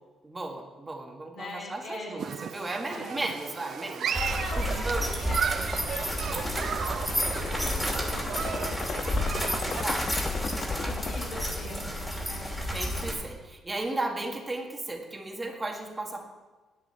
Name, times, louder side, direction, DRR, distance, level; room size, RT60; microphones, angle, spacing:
voice 1, 0.2-4.1 4.5-5.1 9.6-10.2 10.5-11.6 11.9-12.3 12.7-16.2, right 2 dB, 20° right, 2 dB, 1.7 m, -35 dB
voice 2, 1.3-2.4 2.9-3.2 4.1-8.6 8.9-9.0 10.8-12.6, left 2 dB, 70° left, -3 dB, 4.5 m, -42 dB
Human group actions, 2.2-9.8, right 8 dB, 60° right, 0.3 m, -35 dB
sound 1, 4.1-13.1, equal, 5° left, 2.7 m, -31 dB
sound 2, 6.1-11.3, left 4 dB, 45° left, 0.6 m, -36 dB
10.5 x 10.5 x 4.5 m, 1.2 s
cardioid pair, 90°, 0 cm